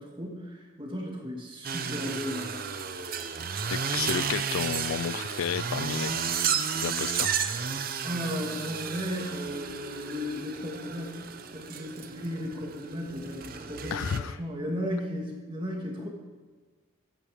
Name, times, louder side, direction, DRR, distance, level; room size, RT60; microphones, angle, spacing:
voice 1, 0.0-2.6 8.0-11.2 11.5-16.1, equal, 25° right, 0 dB, 2.3 m, -35 dB
sound 1, 1.6-14.2, right 6 dB, 45° right, 0.7 m, -32 dB
voice 2, 3.7-6.3 6.8-7.3 13.9-14.4, left 8 dB, 90° left, 20 dB, 0.3 m, -32 dB
14.5 x 10.0 x 5.1 m, 1.4 s
head